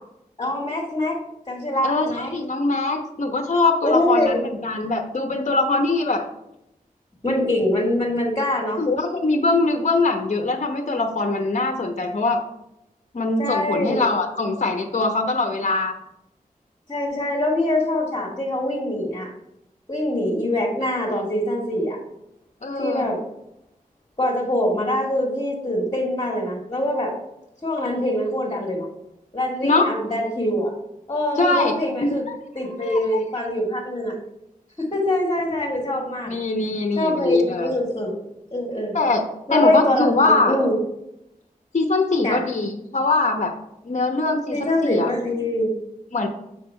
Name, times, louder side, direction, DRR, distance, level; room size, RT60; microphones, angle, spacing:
voice 1, 0.4-1.2 1.5-2.3 3.8-4.4 7.2-8.8 13.4-14.0 16.9-19.3 19.9-22.0 22.8-23.2 24.2-27.1 27.6-28.9 29.3-30.7 31.1-32.2 32.6-34.2 34.8-36.4 37.0-38.2 38.5-38.9 39.5-40.8 42.2-42.5 44.5-45.7, left 1 dB, 25° left, -3 dB, 1.9 m, -23 dB
voice 2, 1.8-4.4 4.6-6.2 8.8-12.4 13.1-15.9 22.6-23.1 29.6-29.8 31.4-31.7 32.0-32.4 32.8-33.2 36.3-37.7 38.9-39.2 39.5-40.5 41.7-43.5 43.8-45.1 46.1-46.3, left 3 dB, 50° left, 5 dB, 0.9 m, -22 dB
6.6 x 5.6 x 4.4 m, 0.85 s
wide cardioid pair, 60°, 15 cm